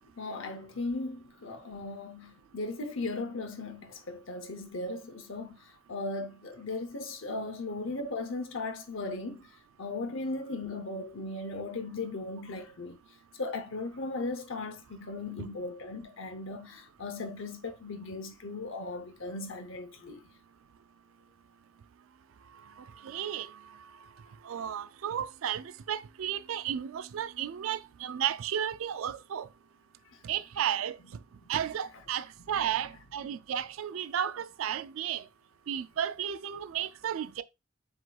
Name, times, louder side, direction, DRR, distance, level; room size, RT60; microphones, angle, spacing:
voice 1, 0.2-9.5 9.8-13.0 13.4-20.2, left 2 dB, 65° left, 0.8 m, -37 dB
voice 2, 22.8-23.6 24.4-29.5 30.2-31.0 31.5-35.2 35.7-37.4, right 9 dB, 70° right, 0.3 m, -33 dB
7.6 x 2.9 x 2.3 m
head